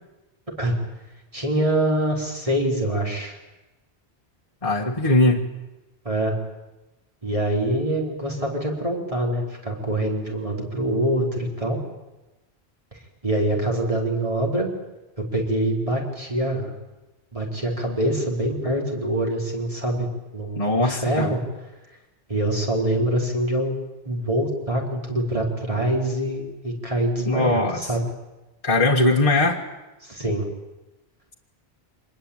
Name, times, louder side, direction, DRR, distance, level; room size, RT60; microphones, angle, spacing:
voice 1, 1.3-3.4 6.0-6.4 7.2-11.8 12.9-14.7 15.2-16.7 17.3-20.1 20.3-21.4 22.3-23.8 24.0-28.1 30.0-30.4, right 1 dB, 35° right, -1 dB, 4.8 m, -25 dB
voice 2, 4.6-5.5 20.6-21.3 27.2-27.8 28.6-29.6, left 2 dB, 35° left, 0 dB, 1.7 m, -20 dB
25.5 x 20.5 x 8.9 m, 1.1 s
omnidirectional pair, 1.1 m